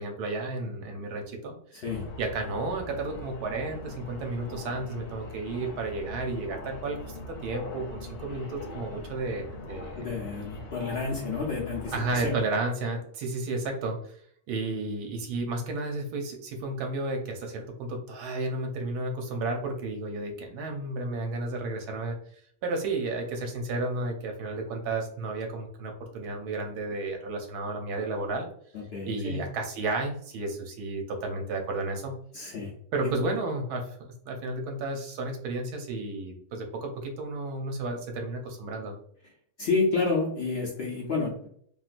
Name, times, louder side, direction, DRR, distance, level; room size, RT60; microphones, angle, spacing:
voice 1, 0.0-1.5 2.2-7.0 7.4-10.1 11.9-14.0 14.5-22.2 22.6-28.5 29.1-32.1 32.9-39.0, right 2 dB, 85° right, 2 dB, 1.2 m, -32 dB
voice 2, 1.7-2.0 10.0-12.4 28.7-29.4 32.3-32.7 33.0-33.1 39.6-41.5, left 4 dB, 55° left, -3 dB, 0.7 m, -30 dB
sound 1, 1.8-12.4, left 2 dB, 85° left, 1.2 m, -41 dB
3.6 x 2.4 x 2.5 m, 0.64 s
omnidirectional pair, 1.6 m